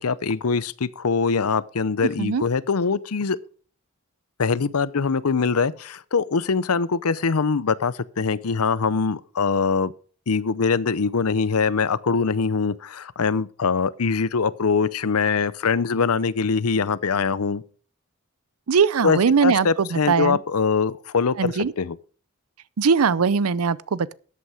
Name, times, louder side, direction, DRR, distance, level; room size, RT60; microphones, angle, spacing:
voice 1, 0.0-3.4 4.4-9.9 10.3-17.6 19.0-22.0, left 5 dB, 85° left, 0.7 m, -23 dB
voice 2, 2.0-2.4 18.7-20.4 21.4-21.7 22.8-24.1, right 5 dB, 85° right, 0.5 m, -21 dB
13.5 x 8.4 x 4.9 m
head